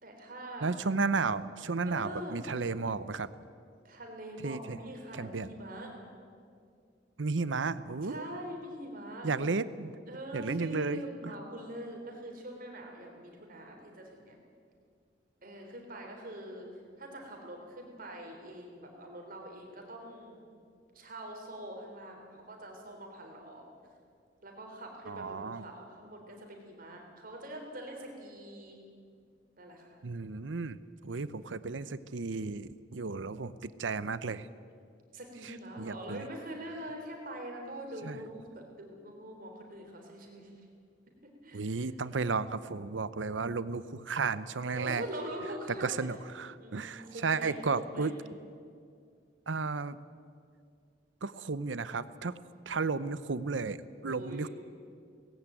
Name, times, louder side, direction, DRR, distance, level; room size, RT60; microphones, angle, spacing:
voice 1, 0.0-0.7 1.9-2.4 3.8-5.9 8.0-9.3 10.1-14.4 15.4-16.7 17.0-20.4 20.9-23.6 24.4-28.8 29.6-30.0 31.1-31.5 35.1-40.5 41.4-41.9 44.7-46.2 46.6-48.1 54.1-54.5, right 1 dB, 50° right, 2 dB, 3.8 m, -44 dB
voice 2, 0.6-3.3 4.4-4.8 5.1-5.5 7.2-8.2 9.2-9.9 10.3-11.3 25.1-25.7 30.0-34.5 35.4-36.2 38.0-38.2 41.5-45.0 45.8-48.1 49.5-50.0 51.2-52.3 52.7-54.5, right 4 dB, 90° right, 16 dB, 0.8 m, -33 dB
18.5 x 16.5 x 9.1 m, 2.3 s
head